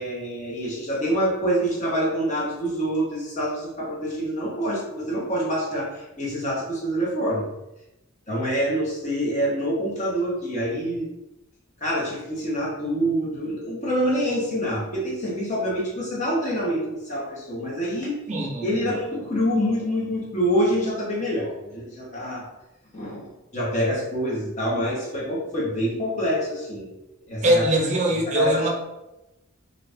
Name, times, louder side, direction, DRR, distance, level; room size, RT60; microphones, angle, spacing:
voice 1, 0.0-7.4 8.3-11.1 11.8-18.2 18.6-22.5 22.9-26.9 27.3-27.6 28.3-28.7, equal, 35° left, -4 dB, 0.8 m, -26 dB
voice 2, 18.3-18.9 27.4-28.7, right 1 dB, 35° right, 0 dB, 0.5 m, -22 dB
2.5 x 2.4 x 3.3 m, 0.95 s
head